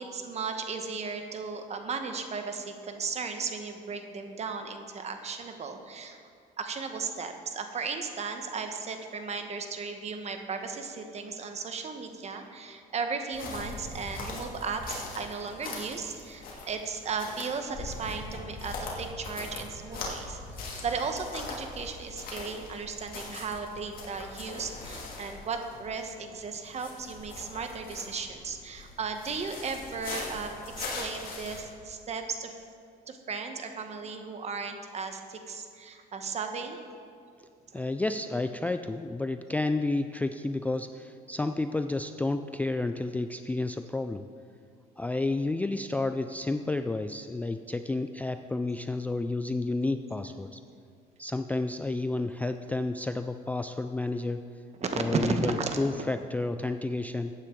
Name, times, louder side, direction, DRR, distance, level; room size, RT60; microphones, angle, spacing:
voice 1, 0.0-6.2 6.6-32.6 33.1-36.8 54.8-55.7, right 5 dB, 40° right, 6 dB, 1.2 m, -35 dB
sound 1, 13.3-31.6, left 3 dB, 55° left, 2.5 m, -41 dB
voice 2, 37.7-44.3 45.0-50.6 51.2-54.4 54.9-57.3, left 2 dB, 10° left, 8 dB, 0.3 m, -31 dB
14.5 x 9.2 x 3.8 m, 2.3 s
cardioid pair, 110°, 17 cm